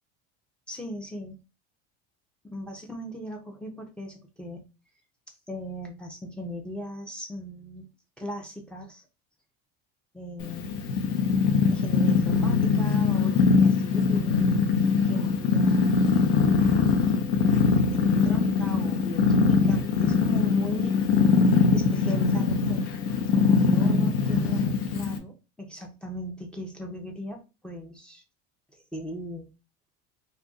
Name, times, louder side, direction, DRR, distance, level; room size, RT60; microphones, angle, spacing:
voice 1, 0.7-1.4 2.4-4.6 5.5-7.9 8.2-9.0 10.1-10.7 11.7-14.6 15.0-16.0 16.9-21.0 21.7-28.2 28.9-29.5, equal, 5° left, 0.4 m, -38 dB
Purr, 10.4-25.2, left 5 dB, 65° left, 0.7 m, -22 dB
2.7 x 2.4 x 3.7 m
cardioid pair, 155°, 31 cm